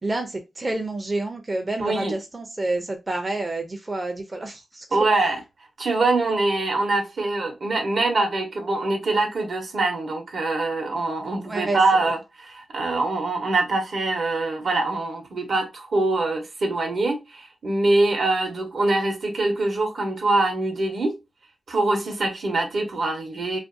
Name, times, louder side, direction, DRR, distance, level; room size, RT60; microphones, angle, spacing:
voice 1, 0.0-5.0 11.4-12.1, right 2 dB, 30° right, 0.5 m, -29 dB
voice 2, 1.8-2.1 4.9-5.4 5.8-21.2 21.7-23.6, right 2 dB, 65° right, 0.8 m, -24 dB
2.5 x 2.2 x 2.5 m
cardioid pair, 60°, 0 cm